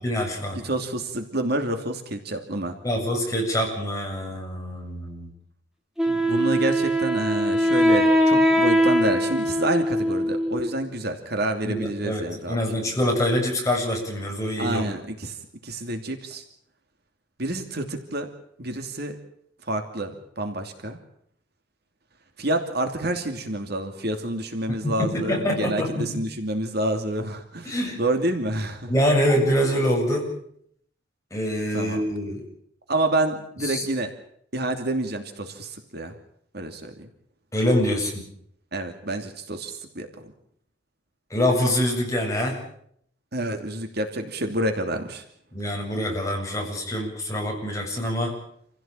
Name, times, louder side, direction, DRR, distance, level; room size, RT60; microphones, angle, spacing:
voice 1, 0.0-0.6 2.8-5.3 11.6-14.9 24.7-26.2 27.6-28.0 28.9-30.3 31.3-32.5 33.6-33.8 37.5-38.2 41.3-42.6 45.5-48.4, equal, 15° left, 0 dB, 7.8 m, -25 dB
voice 2, 0.6-2.7 6.1-12.6 14.6-15.3 15.6-16.4 17.4-18.3 18.6-19.2 19.7-21.0 22.4-28.9 31.7-32.0 32.9-34.1 34.5-36.1 36.5-36.9 38.7-40.1 43.3-45.2, right 1 dB, 55° right, 5 dB, 2.8 m, -28 dB
Wind instrument woodwind instrument, 6.0-10.8, equal, 5° right, 3.5 m, -21 dB
28.0 x 16.5 x 9.0 m, 0.68 s
head